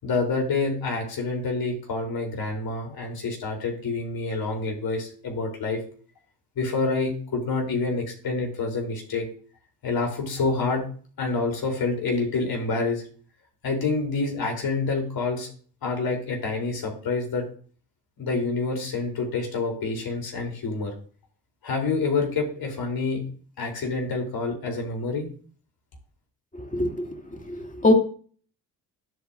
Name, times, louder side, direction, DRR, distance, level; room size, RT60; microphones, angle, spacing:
voice 1, 0.0-5.8 6.6-9.3 9.8-10.8 11.2-13.0 13.6-15.5 15.8-17.4 18.2-20.9 21.6-23.2 23.6-25.3, left 3 dB, 45° left, 2 dB, 4.0 m, -27 dB
voice 2, 26.6-27.1 27.5-27.9, left 1 dB, 15° left, 4 dB, 2.4 m, -22 dB
12.5 x 8.0 x 2.7 m, 0.43 s
figure-of-eight pair, 45°, 49 cm